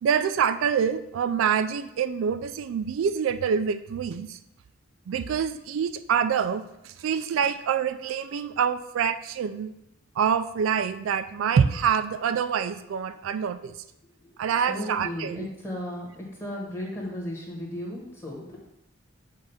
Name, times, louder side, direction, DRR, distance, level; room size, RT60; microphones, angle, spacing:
voice 1, 0.0-4.4 5.1-9.7 10.2-13.8 14.4-15.5, right 7 dB, 75° right, 12 dB, 0.3 m, -26 dB
voice 2, 14.7-16.1 16.4-18.6, left 1 dB, 15° left, -3 dB, 1.4 m, -35 dB
7.3 x 2.5 x 5.7 m, 0.87 s
head